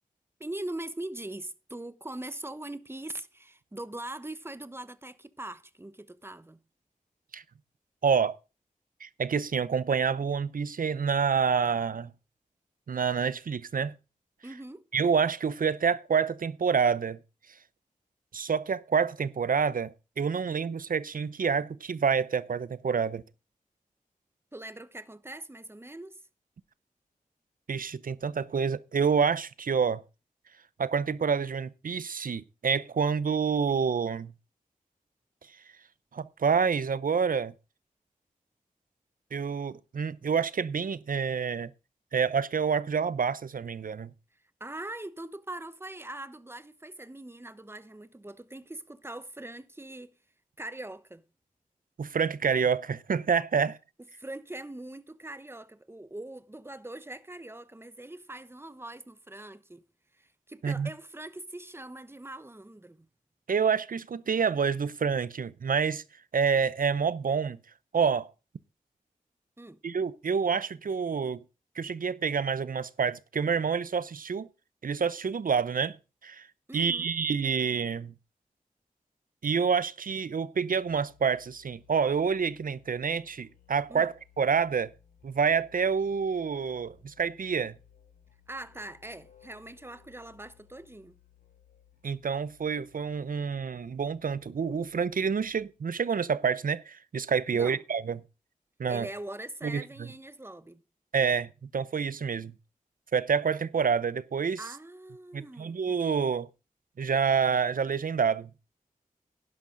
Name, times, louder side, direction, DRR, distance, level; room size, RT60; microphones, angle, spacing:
voice 1, 0.4-6.6 14.4-14.9 24.5-26.2 44.6-50.1 50.6-51.2 54.2-59.9 60.2-63.1 69.6-69.8 76.7-77.1 83.9-84.1 88.5-91.2 97.5-97.8 98.9-100.8 104.6-105.8, right 1 dB, 15° right, 1.0 m, -42 dB
voice 2, 8.0-8.4 9.0-12.1 12.9-13.9 14.9-17.2 18.3-23.2 27.7-30.0 30.8-34.3 36.1-37.5 39.3-41.7 42.1-44.1 52.0-53.8 60.6-60.9 63.5-66.0 66.3-67.6 67.9-68.3 69.8-71.4 71.8-74.5 74.8-76.0 76.2-76.5 76.7-78.1 79.4-84.9 85.2-87.8 92.0-98.2 98.8-99.1 99.6-99.8 101.1-102.5 103.1-104.6 105.3-106.5 107.0-108.5, right 6 dB, 80° right, 0.7 m, -28 dB
Musical instrument, 80.8-95.8, left 9 dB, 80° left, 2.8 m, -61 dB
11.5 x 11.0 x 3.9 m
cardioid pair, 50°, 14 cm